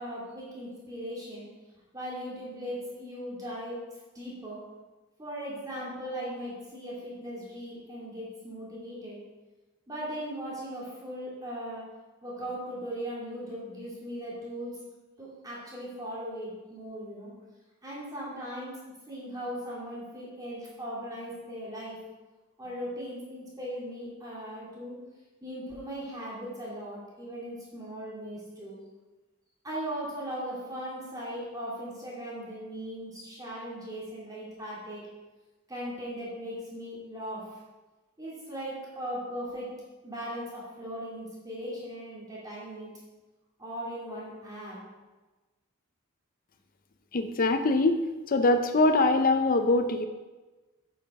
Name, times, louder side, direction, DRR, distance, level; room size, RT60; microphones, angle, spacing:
voice 1, 0.0-1.5 1.9-3.9 4.1-4.6 5.2-9.2 9.9-11.9 12.2-14.8 15.2-17.3 17.8-22.0 22.6-25.0 25.4-28.8 29.6-35.1 35.7-37.6 38.2-39.7 40.0-42.9 43.6-44.8, equal, 20° right, -6 dB, 2.3 m, -38 dB
voice 2, 47.1-48.0 48.3-50.1, left 2 dB, 40° left, 7 dB, 0.5 m, -23 dB
9.2 x 5.7 x 5.3 m, 1.2 s
head